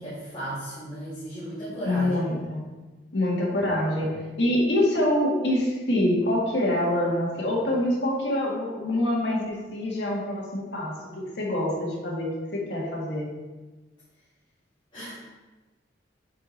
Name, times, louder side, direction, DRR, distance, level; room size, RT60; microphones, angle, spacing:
voice 1, 0.0-2.3 14.9-15.2, right 1 dB, 30° left, -11 dB, 2.3 m, -35 dB
voice 2, 1.8-2.7 3.1-13.3, left 1 dB, 65° left, -3 dB, 2.1 m, -25 dB
8.5 x 4.8 x 4.2 m, 1.2 s
head